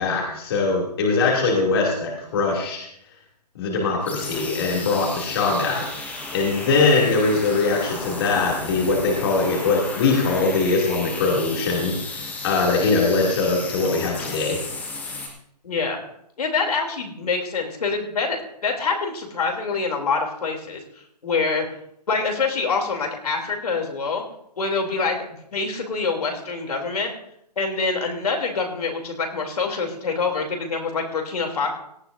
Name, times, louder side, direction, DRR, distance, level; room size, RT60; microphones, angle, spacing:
voice 1, 0.0-2.9 3.5-14.6, left 3 dB, 35° left, -2 dB, 2.7 m, -22 dB
sound 1, 4.0-15.3, left 3 dB, 5° left, 1.3 m, -34 dB
voice 2, 15.6-16.0 16.4-18.4 18.6-20.8 21.2-21.7 22.1-24.2 24.6-25.2 25.5-27.1 27.6-31.7, left 4 dB, 65° left, 2 dB, 3.1 m, -25 dB
17.5 x 12.5 x 2.7 m, 0.72 s
hypercardioid pair, 155°, 21 cm